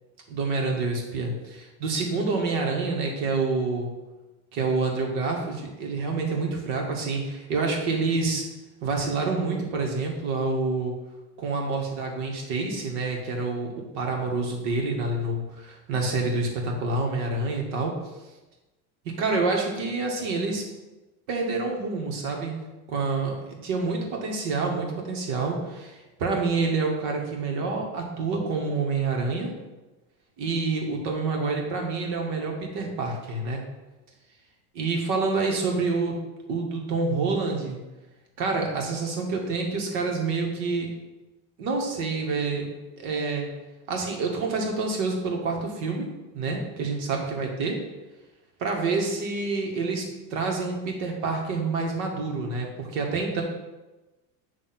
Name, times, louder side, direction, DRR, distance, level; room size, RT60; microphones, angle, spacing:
voice 1, 0.3-3.9 4.5-8.4 8.8-10.9 11.4-17.9 19.1-20.6 21.3-22.6 22.9-29.5 30.4-33.6 34.7-36.1 36.5-37.8 38.4-40.9 41.6-42.7 43.0-43.5 43.9-46.1 46.3-47.8 48.6-53.4, right 3 dB, 75° right, 1 dB, 1.8 m, -27 dB
7.6 x 3.1 x 5.9 m, 1.1 s
supercardioid pair, 115°, 42 cm